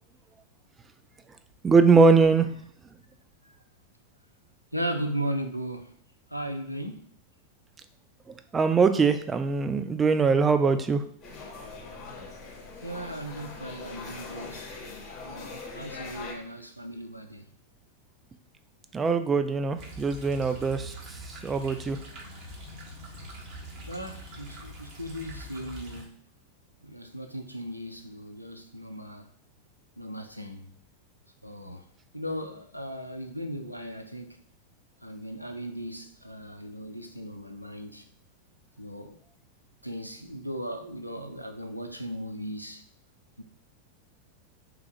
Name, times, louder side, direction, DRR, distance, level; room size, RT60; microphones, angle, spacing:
voice 1, 1.6-2.5 8.5-11.0 18.9-20.9 21.4-22.0, right 4 dB, 15° right, 0.3 m, -22 dB
voice 2, 4.7-6.0 6.3-7.2 12.8-14.7 15.2-17.5 23.9-26.2 26.8-29.3 30.0-30.7 31.4-31.9 32.1-34.4 35.0-38.1 38.8-39.2 39.8-42.8 43.4-43.5, equal, 90° right, 0.4 m, -37 dB
sound 1, 11.2-16.3, left 3 dB, 20° left, 1.4 m, -41 dB
sound 2, 19.8-26.0, right 1 dB, 35° right, 1.0 m, -43 dB
3.3 x 2.3 x 3.2 m
figure-of-eight pair, 90°, 0 cm